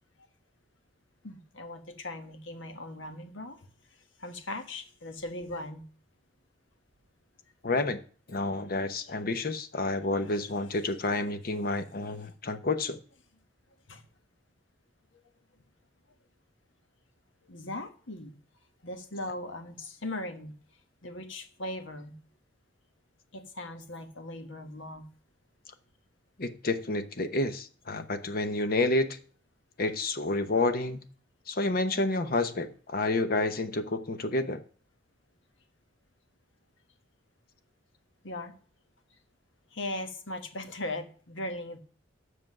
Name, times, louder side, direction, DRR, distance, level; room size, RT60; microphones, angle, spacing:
voice 1, 1.2-3.6 4.2-5.8 13.9-14.0 17.5-18.3 18.8-20.5 21.0-22.2 23.3-25.1 38.2-38.5 39.7-41.8, left 1 dB, 90° left, 7 dB, 1.3 m, -39 dB
voice 2, 7.6-8.0 8.3-13.0 26.4-29.2 29.8-31.1 31.5-34.6, left 2 dB, 50° left, 10 dB, 0.9 m, -29 dB
7.7 x 6.2 x 6.0 m, 0.43 s
head